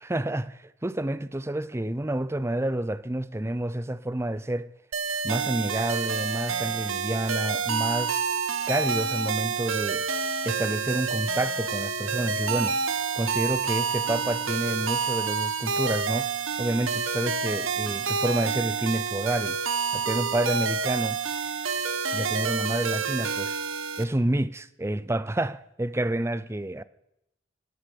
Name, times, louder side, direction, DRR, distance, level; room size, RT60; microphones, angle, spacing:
voice 1, 0.0-4.7 5.2-8.3 8.7-10.1 10.5-12.8 13.2-16.3 16.6-19.6 19.9-21.2 22.1-23.6 24.0-26.8, right 1 dB, 15° right, 0.5 m, -29 dB
sound 1, 4.9-24.0, right 6 dB, 90° right, 1.2 m, -28 dB
18.0 x 14.0 x 5.2 m
head